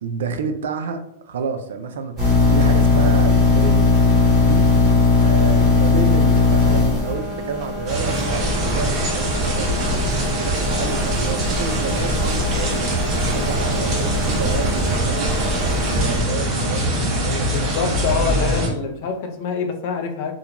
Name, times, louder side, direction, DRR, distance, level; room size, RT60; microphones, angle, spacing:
voice 1, 0.0-3.9 4.4-4.7 5.2-13.0 13.3-15.4 15.9-18.0, right 5 dB, 80° right, 7 dB, 0.3 m, -30 dB
sound 1, 2.2-16.2, left 4 dB, 5° right, 1.2 m, -19 dB
sound 2, 7.9-18.7, equal, 30° right, 0.7 m, -23 dB
voice 2, 17.5-20.3, left 5 dB, 45° left, 5 dB, 0.4 m, -25 dB
2.4 x 2.2 x 2.9 m, 0.75 s
supercardioid pair, 170°, 0 cm